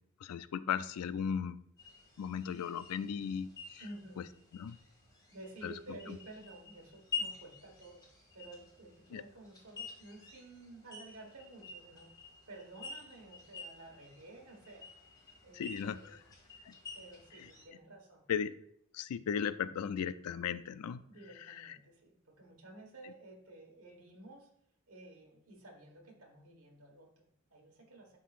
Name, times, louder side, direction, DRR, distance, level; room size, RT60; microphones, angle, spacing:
voice 1, 0.2-1.6 2.2-3.8 4.2-4.3 4.6-4.8 5.6-5.7 9.1-9.2 15.5-16.2 16.7-16.8 18.3-18.6 18.9-21.0 21.5-21.8 23.0-23.1, left 7 dB, 90° left, 14 dB, 0.4 m, -36 dB
sound 1, 1.8-17.7, left 5 dB, 20° left, 1.6 m, -48 dB
voice 2, 3.8-4.2 5.3-8.0 8.3-16.2 16.9-18.3 21.1-24.5 24.9-28.2, right 2 dB, 70° right, 1 dB, 1.5 m, -53 dB
11.0 x 3.8 x 2.5 m, 0.67 s
head